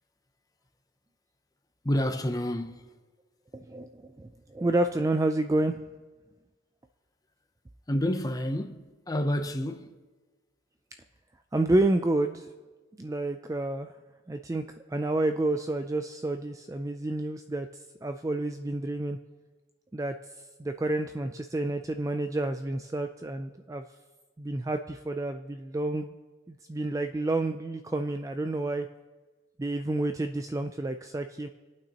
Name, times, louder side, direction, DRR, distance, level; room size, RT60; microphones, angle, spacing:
voice 1, 1.8-2.9 7.9-9.9, left 1 dB, 20° left, 0.7 m, -29 dB
voice 2, 3.5-5.8 11.5-12.5 13.0-13.9 14.3-17.7 18.0-19.2 19.9-20.2 20.6-23.8 24.4-26.1 26.5-28.9 29.6-31.5, right 2 dB, 15° right, 0.3 m, -29 dB
25.5 x 8.8 x 2.9 m
head